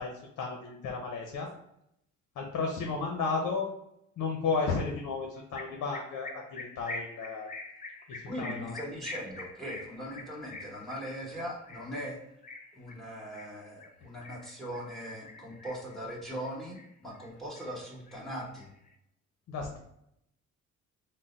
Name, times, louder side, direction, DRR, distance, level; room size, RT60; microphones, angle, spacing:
voice 1, 0.0-1.5 2.4-3.7 4.2-7.5 8.1-8.7 19.5-19.8, left 4 dB, 70° left, 1 dB, 0.7 m, -33 dB
sound 1, 5.5-14.9 15.3-16.0 16.3-17.3 17.5-18.9, left 3 dB, 30° left, 0.6 m, -45 dB
voice 2, 8.3-12.2 12.7-18.7, equal, ahead, -4 dB, 1.3 m, -40 dB
3.8 x 2.1 x 3.9 m, 0.77 s
cardioid pair, 90°, 30 cm